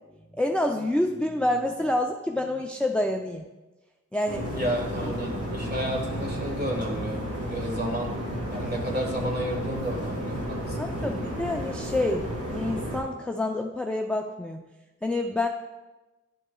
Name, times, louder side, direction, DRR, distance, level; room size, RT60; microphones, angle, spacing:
voice 1, 0.3-3.5 4.1-4.5 10.8-14.6 15.0-15.5, left 1 dB, 5° left, 3 dB, 0.4 m, -27 dB
sound 1, 4.3-13.0, equal, 50° right, 2.1 m, -32 dB
voice 2, 4.5-7.2 7.5-8.1 8.5-11.2, equal, 35° right, 0 dB, 1.6 m, -32 dB
10.5 x 6.0 x 2.3 m, 1.1 s
wide cardioid pair, 60°, 30 cm